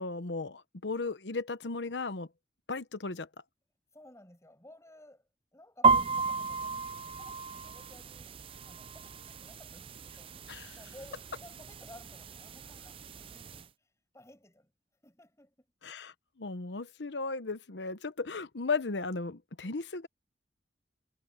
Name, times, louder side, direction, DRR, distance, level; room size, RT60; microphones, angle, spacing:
voice 1, 0.0-2.3 2.7-3.3 10.5-10.7 15.8-20.1, left 3 dB, 85° left, 1.0 m, -36 dB
voice 2, 3.9-8.4 8.6-14.7 15.0-15.7, left 1 dB, 15° left, 7.6 m, -56 dB
sound 1, 5.8-13.6, right 4 dB, 30° right, 0.4 m, -33 dB
head